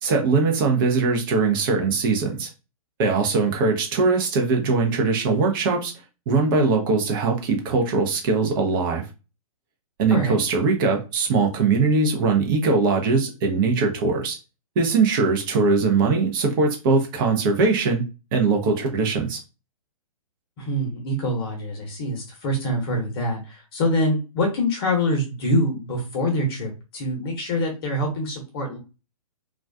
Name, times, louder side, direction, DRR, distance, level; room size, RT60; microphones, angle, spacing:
voice 1, 0.0-2.5 3.0-5.9 6.3-9.0 10.0-14.4 14.8-18.0 18.3-19.4, right 4 dB, 35° right, 2 dB, 0.7 m, -21 dB
voice 2, 20.6-28.8, left 1 dB, 40° left, 1 dB, 0.8 m, -25 dB
2.4 x 2.3 x 2.3 m, 0.29 s
figure-of-eight pair, 120°, 19 cm